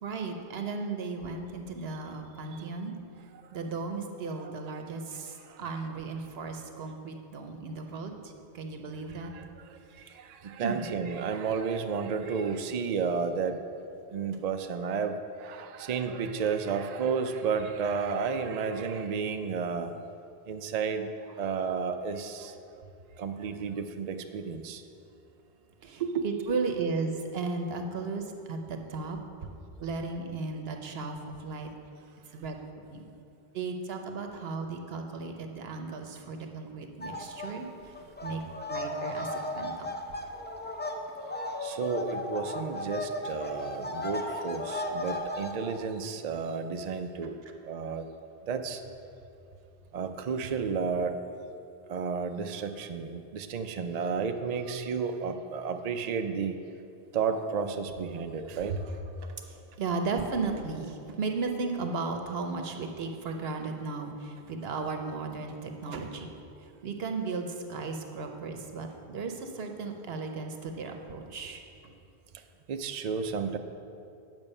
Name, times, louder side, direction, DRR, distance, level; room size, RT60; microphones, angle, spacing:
voice 1, 0.0-3.0 3.5-9.3 10.6-10.9 25.8-29.2 29.8-31.7 32.3-32.6 32.9-33.0 33.5-37.9 38.2-40.2 58.7-58.9 59.5-71.9, right 4 dB, 75° right, 5 dB, 1.0 m, -35 dB
voice 2, 9.2-13.6 14.1-19.9 20.5-22.9 23.2-24.8 26.0-26.2 37.5-37.6 41.6-47.4 47.6-48.1 48.4-48.8 49.9-51.2 51.9-56.6 57.1-58.9 72.7-73.6, right 5 dB, 55° right, 6 dB, 0.5 m, -32 dB
sound 1, 37.0-37.5 37.8-45.8, left 1 dB, 15° left, 0.4 m, -35 dB
9.0 x 6.2 x 5.4 m, 2.6 s
omnidirectional pair, 1.1 m